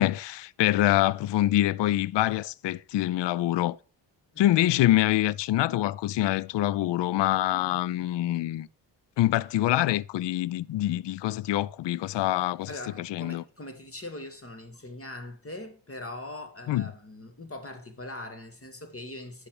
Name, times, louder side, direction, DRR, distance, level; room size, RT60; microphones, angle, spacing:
voice 1, 0.0-3.8 4.4-8.7 9.2-12.7 13.0-13.4 16.7-16.9, left 14 dB, 65° left, 0.5 m, -25 dB
voice 2, 12.7-19.5, left 2 dB, 30° left, 2.2 m, -41 dB
9.8 x 5.9 x 4.9 m
supercardioid pair, 55°, 46 cm